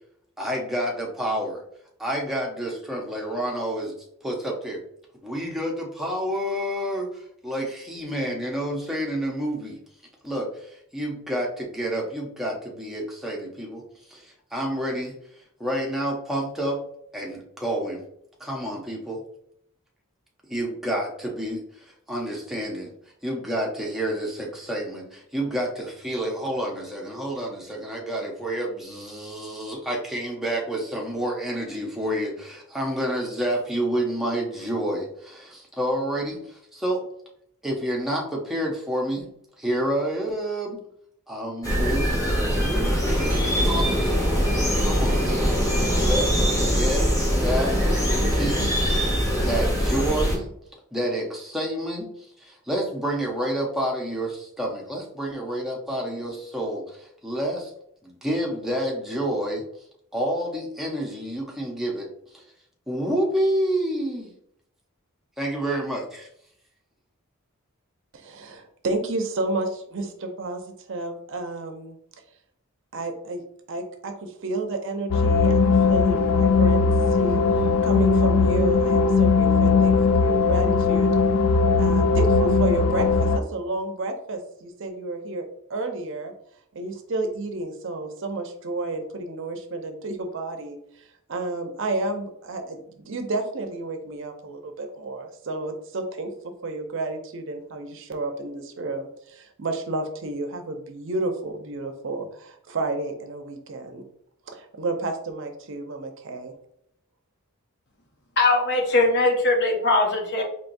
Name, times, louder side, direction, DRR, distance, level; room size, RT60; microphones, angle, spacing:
voice 1, 0.4-1.6 2.0-3.9 4.2-4.8 5.2-9.8 10.2-15.2 15.6-16.8 17.1-18.0 18.4-19.2 20.5-22.9 23.2-37.1 37.6-39.3 39.6-40.8 41.3-44.2 44.7-45.6 46.0-47.8 48.3-49.0 49.4-50.5 50.9-52.1 52.4-57.7 58.0-59.6 60.1-62.1 62.3-62.4 62.9-64.3 65.4-66.3, right 1 dB, ahead, -2 dB, 0.7 m, -29 dB
sound 1, 41.6-50.3, equal, 15° left, 1.3 m, -22 dB
voice 2, 68.1-72.0 72.9-73.4 73.7-81.1 81.8-85.4 85.7-86.3 86.7-90.8 91.3-96.3 96.6-104.0 104.5-106.5, right 2 dB, 60° right, 5 dB, 0.6 m, -31 dB
sound 2, 75.1-83.4, left 4 dB, 85° left, 0.4 m, -19 dB
voice 3, 108.4-110.4, left 2 dB, 50° left, 2 dB, 0.8 m, -20 dB
4.5 x 2.9 x 2.6 m, 0.71 s
head